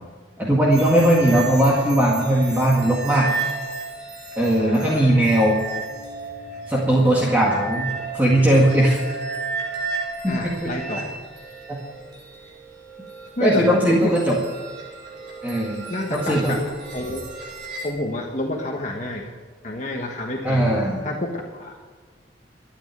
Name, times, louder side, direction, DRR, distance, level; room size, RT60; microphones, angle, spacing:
voice 1, 0.4-3.3 4.4-5.6 6.7-9.0 10.2-10.7 11.7-11.8 13.4-14.4 15.4-16.5 20.4-21.0, right 1 dB, 10° right, -5 dB, 1.9 m, -19 dB
sound 1, 0.7-17.9, right 3 dB, 65° right, 3.8 m, -33 dB
voice 2, 4.6-5.1 10.2-11.0 13.4-14.1 15.9-17.3 17.8-19.3 19.6-21.8, left 1 dB, 40° left, 0 dB, 1.3 m, -29 dB
13.0 x 8.9 x 9.0 m, 1.5 s
head